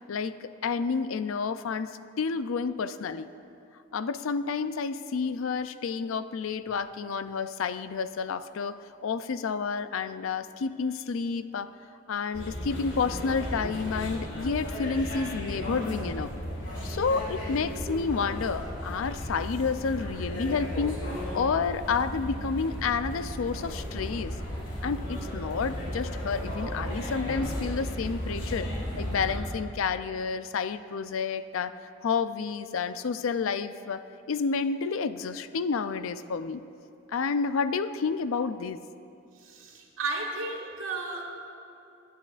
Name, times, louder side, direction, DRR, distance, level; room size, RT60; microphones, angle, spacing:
voice 1, 0.1-3.3 3.9-11.7 12.1-16.3 16.8-21.0 21.3-24.4 24.8-36.6 37.1-38.8, left 5 dB, 80° left, 13 dB, 0.4 m, -30 dB
sound 1, 12.3-29.4, equal, 65° left, 3.0 m, -35 dB
voice 2, 39.4-41.3, right 3 dB, 85° right, -1 dB, 1.8 m, -34 dB
24.0 x 9.5 x 2.5 m, 2.6 s
head